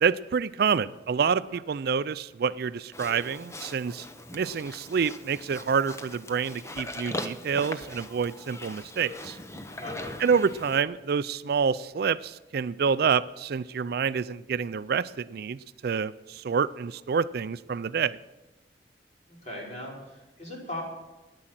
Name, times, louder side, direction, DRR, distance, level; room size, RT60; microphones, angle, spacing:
voice 1, 0.0-4.1 4.3-9.4 10.2-18.2, right 6 dB, 55° right, 16 dB, 0.4 m, -27 dB
Livestock farm animals working animals, 2.9-10.8, left 1 dB, 15° left, 0.8 m, -40 dB
voice 2, 9.7-10.0 19.3-20.8, left 1 dB, 40° left, -3 dB, 5.2 m, -39 dB
12.5 x 10.0 x 7.5 m, 1.1 s
head